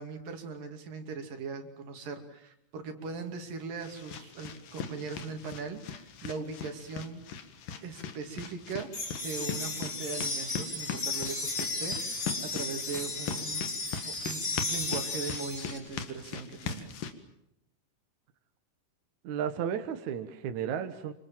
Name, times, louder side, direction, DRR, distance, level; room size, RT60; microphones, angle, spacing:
voice 1, 0.0-7.2 7.8-8.9 9.2-13.7 14.0-16.9, right 4 dB, 85° right, 6 dB, 4.4 m, -39 dB
sound 1, 3.1-17.1, left 7 dB, 80° left, 3.5 m, -41 dB
sound 2, 8.9-15.8, left 3 dB, 35° left, 5.8 m, -34 dB
voice 2, 19.2-21.1, right 8 dB, 65° right, 8 dB, 2.6 m, -33 dB
28.0 x 25.0 x 7.5 m, 0.78 s
omnidirectional pair, 3.8 m